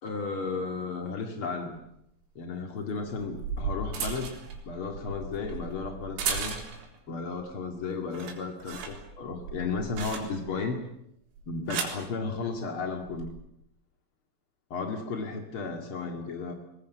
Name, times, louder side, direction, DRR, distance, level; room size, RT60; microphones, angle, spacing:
voice 1, 0.0-1.8 2.3-4.4 4.6-6.6 7.1-10.8 11.5-13.3 14.7-16.5, left 4 dB, 65° left, 4 dB, 1.3 m, -34 dB
sound 1, 1.8-1.9 3.0-7.0 7.4-7.8 8.0-10.6 11.4-12.1 13.0-13.3, right 5 dB, 80° right, 6.6 m, -36 dB
22.0 x 21.0 x 9.3 m, 0.77 s
omnidirectional pair, 6.0 m